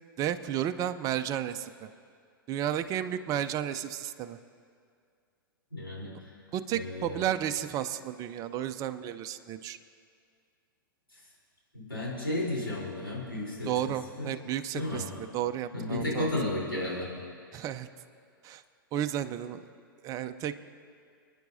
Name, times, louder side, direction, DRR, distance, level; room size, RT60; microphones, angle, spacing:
voice 1, 0.2-1.9 2.5-4.4 6.5-9.8 13.7-15.0 15.3-16.3 17.5-17.9 18.4-18.6 18.9-19.7 20.0-20.5, right 10 dB, 30° right, 10 dB, 0.5 m, -32 dB
voice 2, 5.7-6.1 6.7-7.2 11.1-11.2 11.7-14.3 14.7-15.1 15.7-17.1, left 1 dB, 90° left, -6 dB, 3.8 m, -33 dB
26.5 x 9.8 x 2.7 m, 2.3 s
figure-of-eight pair, 100°, 12 cm